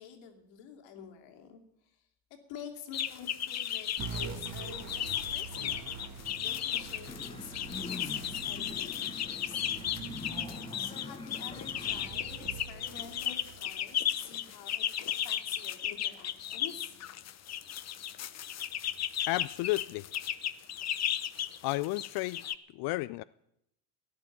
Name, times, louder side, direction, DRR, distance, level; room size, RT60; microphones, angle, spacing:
voice 1, 0.0-2.0 2.5-5.9 6.4-7.1 7.4-9.6 10.8-17.0, left 8 dB, 65° left, 4 dB, 2.9 m, -49 dB
sound 1, 2.9-22.5, left 10 dB, 30° left, 0.9 m, -35 dB
sound 2, 4.0-14.8, right 5 dB, 35° right, 1.7 m, -45 dB
sound 3, 7.1-12.1, left 3 dB, 10° left, 1.1 m, -44 dB
voice 2, 19.2-20.1 21.6-22.5 22.7-23.2, left 20 dB, 50° left, 17 dB, 0.5 m, -32 dB
13.5 x 10.5 x 8.6 m, 0.79 s
hypercardioid pair, 80°, 49 cm